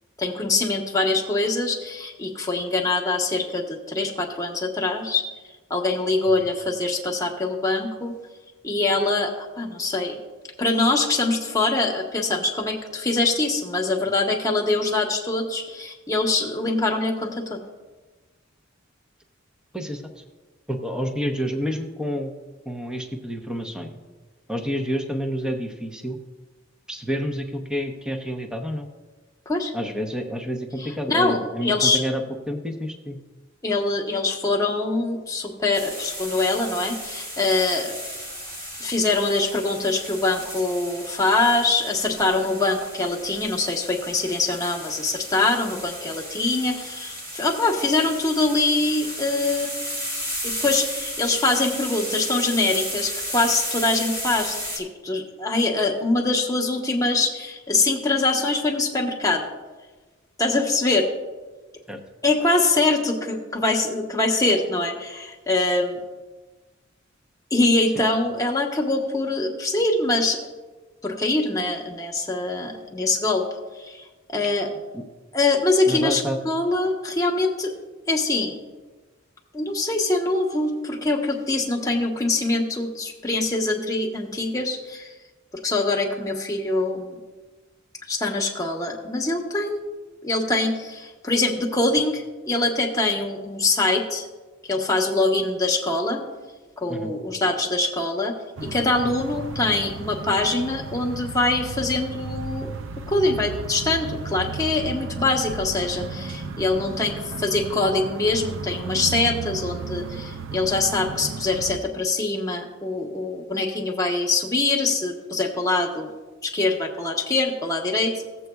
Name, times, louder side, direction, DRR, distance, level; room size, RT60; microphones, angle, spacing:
voice 1, 0.2-5.2 5.7-8.2 8.6-10.2 10.6-17.6 29.5-29.7 31.1-32.0 33.6-38.0 38.8-49.9 50.4-59.5 60.4-61.1 62.2-66.0 67.5-70.4 71.0-73.4 73.7-74.0 74.3-74.7 75.3-77.7 78.1-78.6 79.5-85.1 85.6-87.2 88.1-89.8 90.2-94.3 94.6-96.2 96.8-98.3 98.7-102.7 103.1-116.1 116.4-118.1, left 2 dB, 15° left, -1 dB, 1.1 m, -23 dB
voice 2, 19.7-20.2 20.7-22.3 22.6-24.0 24.5-26.2 26.9-28.9 29.7-33.2 61.9-62.0 74.4-74.5 74.9-75.0 75.9-76.4 96.9-97.2, equal, 5° right, 4 dB, 0.7 m, -29 dB
sound 1, 35.7-54.8, equal, 45° right, 2.0 m, -34 dB
sound 2, 98.6-111.8, right 4 dB, 65° right, 0.5 m, -34 dB
15.5 x 7.8 x 2.3 m, 1.2 s
head